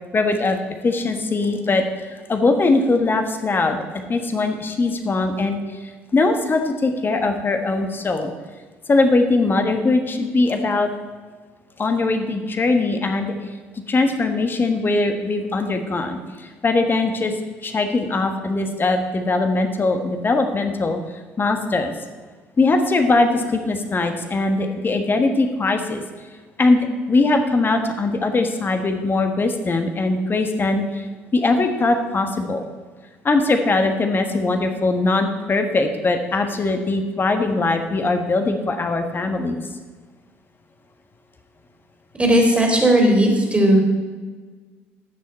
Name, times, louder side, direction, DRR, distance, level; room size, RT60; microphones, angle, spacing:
voice 1, 0.1-0.6 0.8-3.8 4.1-5.6 6.1-8.3 8.9-10.9 11.8-13.3 13.9-17.3 17.6-21.0 21.4-21.9 22.6-26.0 26.6-31.0 31.3-32.6 33.2-39.6, left 3 dB, 30° left, 6 dB, 1.4 m, -21 dB
voice 2, 42.2-43.8, right 1 dB, 15° right, 0 dB, 2.8 m, -16 dB
15.5 x 6.3 x 4.3 m, 1.4 s
hypercardioid pair, 65°, 7 cm